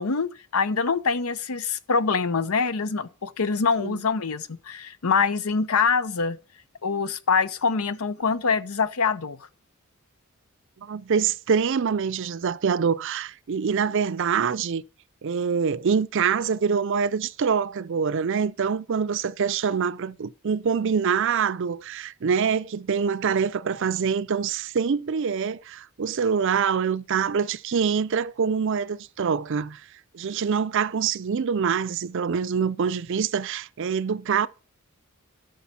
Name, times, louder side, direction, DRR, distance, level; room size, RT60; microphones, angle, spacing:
voice 1, 0.0-6.4 6.8-9.4, left 5 dB, 85° left, 0.7 m, -24 dB
voice 2, 10.8-14.8 15.2-29.8 30.1-34.5, right 6 dB, 60° right, 0.5 m, -25 dB
12.5 x 6.4 x 4.2 m
head